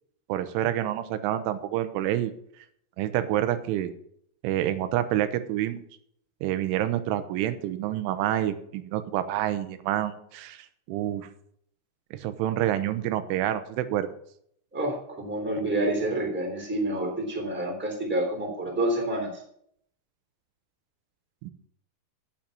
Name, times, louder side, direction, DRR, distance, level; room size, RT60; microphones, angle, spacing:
voice 1, 0.3-2.3 3.0-3.9 4.4-5.9 6.4-11.3 12.1-14.1 21.4-21.5, right 12 dB, 90° right, 10 dB, 3.3 m, -28 dB
voice 2, 14.7-19.4, right 1 dB, 5° right, 1 dB, 2.6 m, -28 dB
8.8 x 8.7 x 6.8 m, 0.67 s
omnidirectional pair, 5.5 m